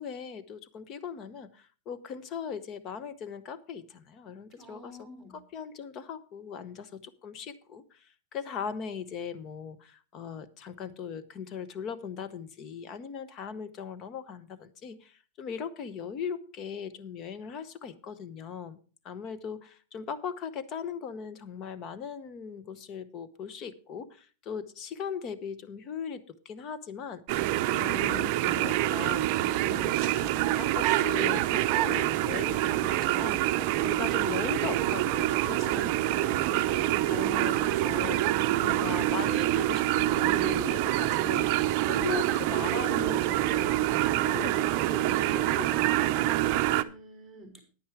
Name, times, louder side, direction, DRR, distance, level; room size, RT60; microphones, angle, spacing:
voice 1, 0.0-5.1 5.3-18.8 19.0-27.5 27.7-46.4, left 7 dB, 30° left, 14 dB, 0.9 m, -39 dB
voice 2, 4.6-5.4 46.7-47.6, right 1 dB, 5° left, 3 dB, 3.5 m, -48 dB
sound 1, 27.3-46.8, right 15 dB, 40° right, 0.6 m, -26 dB
10.0 x 9.4 x 4.6 m, 0.38 s
supercardioid pair, 165°, 0 cm